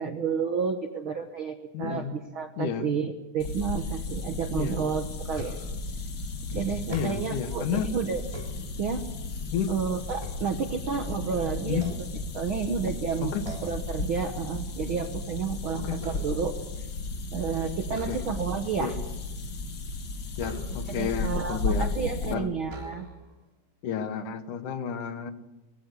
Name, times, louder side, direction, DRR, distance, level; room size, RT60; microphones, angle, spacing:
voice 1, 0.0-5.6 6.5-8.2 8.8-9.0 9.7-12.1 12.3-13.3 13.6-16.6 17.3-19.0 20.9-23.1, right 6 dB, 65° right, 6 dB, 1.3 m, -31 dB
voice 2, 1.7-2.1 2.6-2.9 4.6-4.8 6.9-7.9 9.5-9.7 11.7-11.9 13.2-13.5 15.8-16.0 17.9-18.2 18.8-18.9 20.4-21.9 22.2-22.5 23.8-25.3, left 7 dB, 70° left, 10 dB, 2.6 m, -31 dB
sound 1, 3.4-22.3, left 3 dB, 45° left, 1.5 m, -34 dB
sound 2, 5.3-5.9 6.8-7.5 8.1-9.2 9.7-11.2 11.7-12.7 13.4-13.9 14.3-14.6 14.9-16.7 17.9-18.7 20.4-21.1 21.9-22.0 22.6-23.4, right 1 dB, 10° right, 2.7 m, -44 dB
22.5 x 16.0 x 8.4 m, 1.0 s
omnidirectional pair, 3.9 m